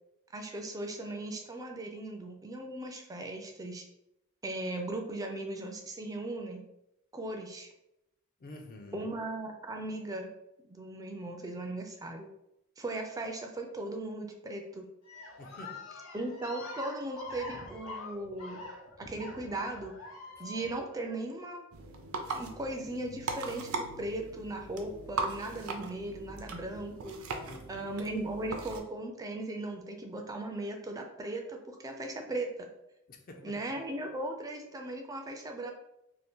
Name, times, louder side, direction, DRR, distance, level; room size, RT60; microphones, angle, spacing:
voice 1, 0.3-3.8 4.4-6.6 7.1-7.7 8.9-10.3 10.7-12.3 12.8-14.9 16.1-18.6 19.0-20.0 20.4-21.6 22.3-27.2 27.7-32.7 33.4-35.7, right 2 dB, 15° right, 3 dB, 0.3 m, -38 dB
voice 2, 8.4-9.1 15.4-15.8 27.5-27.9 33.1-33.6, left 1 dB, 45° left, 4 dB, 0.4 m, -48 dB
sound 1, 15.1-21.2, left 2 dB, 85° left, 0.6 m, -45 dB
sound 2, 21.7-28.8, right 3 dB, 80° right, 0.5 m, -39 dB
2.7 x 2.4 x 3.5 m, 0.85 s
head